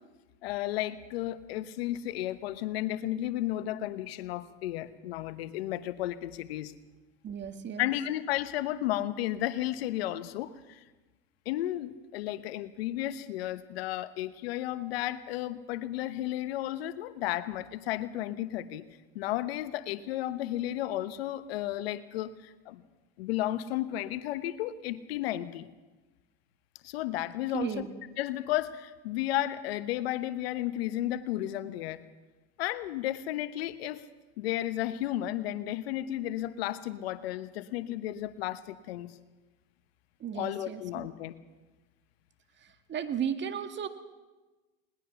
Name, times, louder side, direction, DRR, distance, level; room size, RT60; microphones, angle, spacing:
voice 1, 0.4-6.7 7.8-10.8 11.4-18.9 19.1-22.8 23.2-25.7 26.8-27.8 28.2-32.0 32.6-34.0 34.4-39.1 40.3-41.3, left 14 dB, 85° left, 13 dB, 1.1 m, -33 dB
voice 2, 7.2-7.9 27.5-27.9 40.2-41.1 42.9-43.9, right 8 dB, 40° right, 9 dB, 1.9 m, -34 dB
21.0 x 19.5 x 7.0 m, 1.2 s
supercardioid pair, 105°, 30 cm